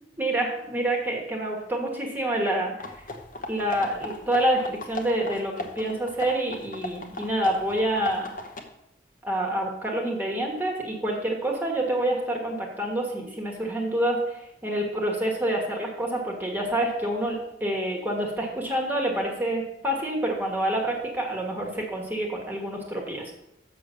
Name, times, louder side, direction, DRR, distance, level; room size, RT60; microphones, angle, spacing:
voice 1, 0.2-2.7 3.5-8.3 9.2-23.3, right 1 dB, 10° right, 0 dB, 1.5 m, -27 dB
sound 1, 2.8-8.6, left 2 dB, 45° left, 1.1 m, -37 dB
6.8 x 6.3 x 6.8 m, 0.81 s
head